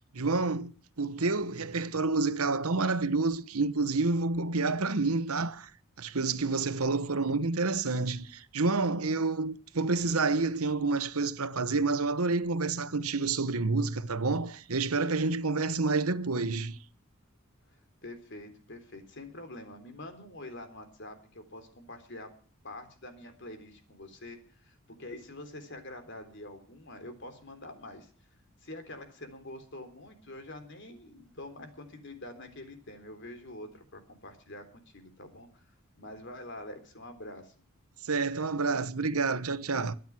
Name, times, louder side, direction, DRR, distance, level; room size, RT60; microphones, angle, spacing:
voice 1, 0.1-5.7 6.0-16.8 38.0-39.9, right 3 dB, 85° right, 1.1 m, -29 dB
voice 2, 17.7-22.3 22.6-28.1 28.6-35.7 36.0-37.5, left 1 dB, 55° left, 3.7 m, -46 dB
23.5 x 9.3 x 6.0 m
head